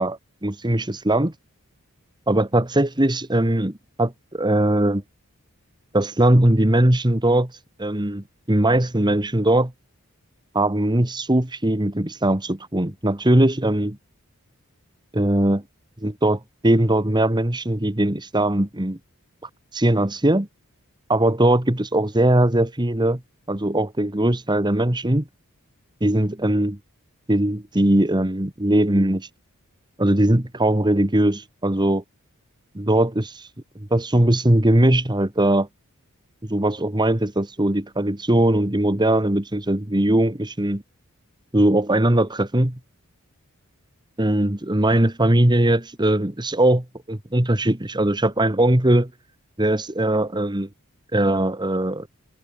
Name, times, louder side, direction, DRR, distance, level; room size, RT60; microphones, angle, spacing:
voice 1, 0.0-1.3 2.3-5.0 5.9-7.5 7.8-9.7 10.5-14.0 15.1-15.6 16.0-19.0 19.7-20.5 21.1-23.2 23.5-25.3 26.0-26.8 27.3-29.3 30.0-32.0 32.7-33.5 33.9-35.7 36.4-40.8 41.5-42.8 44.2-49.1 49.6-50.7 51.1-52.1, right 1 dB, 20° right, 1.6 m, -20 dB
head